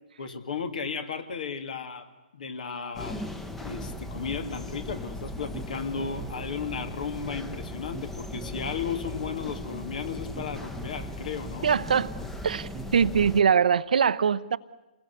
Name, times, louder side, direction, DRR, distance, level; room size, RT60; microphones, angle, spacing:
voice 1, 0.2-3.2 3.6-11.7, left 6 dB, 65° left, 2.4 m, -34 dB
sound 1, 2.9-13.4, left 2 dB, 5° left, 1.0 m, -38 dB
sound 2, 3.8-13.3, right 4 dB, 15° right, 1.2 m, -44 dB
voice 2, 11.6-12.1 12.4-14.6, right 7 dB, 70° right, 0.8 m, -22 dB
27.5 x 20.5 x 8.2 m
hypercardioid pair, 140°, 5 cm